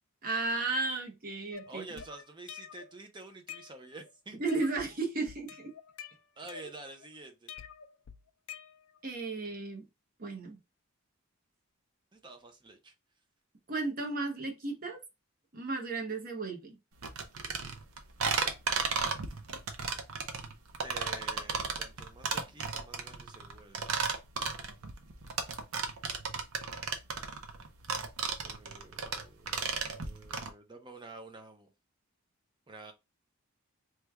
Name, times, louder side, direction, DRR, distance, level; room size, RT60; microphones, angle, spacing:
voice 1, 0.2-1.9 4.3-5.7 9.0-9.9 10.2-10.6 13.7-15.0 15.5-16.8, right 3 dB, 45° right, 0.9 m, -34 dB
sound 1, 1.5-2.9 3.3-4.1 4.5-4.9 5.3-7.1 7.5-9.1, left 8 dB, 75° left, 0.4 m, -48 dB
voice 2, 1.7-4.4 6.4-7.5 12.1-12.9 20.8-23.9 28.4-31.7 32.7-32.9, right 2 dB, 20° right, 0.5 m, -49 dB
sound 2, 17.0-30.5, right 5 dB, 90° right, 0.6 m, -34 dB
3.2 x 2.3 x 3.3 m
head